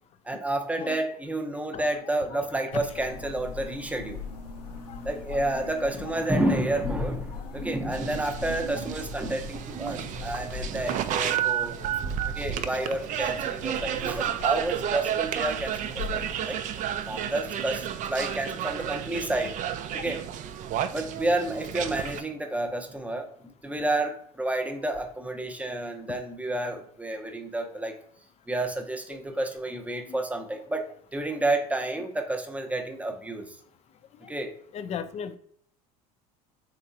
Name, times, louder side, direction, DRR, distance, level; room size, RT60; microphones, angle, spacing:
voice 1, 0.3-4.2 5.0-11.8 12.4-16.6 17.1-19.5 20.0-20.2 20.9-23.3 23.6-27.9 28.5-33.6 34.3-34.5, right 1 dB, 5° right, 0.7 m, -30 dB
voice 2, 1.7-3.3 4.9-5.5 6.0-7.6 8.4-8.9 12.0-12.2 13.8-13.9 15.3-15.4 16.1-16.3 18.6-19.0 26.1-26.2 27.6-27.7 29.1-29.2 30.0-30.2 31.3-31.4 32.0-32.1 34.1-34.3 34.7-35.4, left 7 dB, 35° left, 0.4 m, -41 dB
sound 1, 2.7-16.5, left 5 dB, 85° left, 0.6 m, -41 dB
sound 2, 7.9-22.2, right 10 dB, 40° right, 0.4 m, -31 dB
3.6 x 3.1 x 2.6 m
hypercardioid pair, 75°, 20 cm